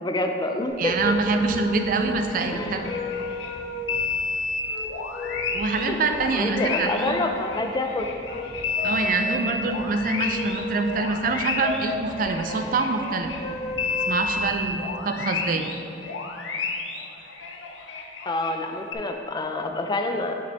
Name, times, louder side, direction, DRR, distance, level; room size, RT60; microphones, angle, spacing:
voice 1, 0.0-1.1 2.5-2.8 5.9-6.0 6.4-8.1 18.3-20.4, left 2 dB, 20° left, 4 dB, 0.4 m, -27 dB
sound 1, 0.7-14.7, left 2 dB, 40° left, 1.4 m, -35 dB
voice 2, 0.8-2.9 5.5-7.3 8.8-13.3 14.1-15.7, right 3 dB, 50° right, 6 dB, 0.4 m, -25 dB
sound 2, 2.0-3.5 3.9-13.4 13.8-18.5 18.9-19.0, left 4 dB, 85° left, 0.6 m, -31 dB
5.9 x 5.0 x 3.4 m, 2.7 s
head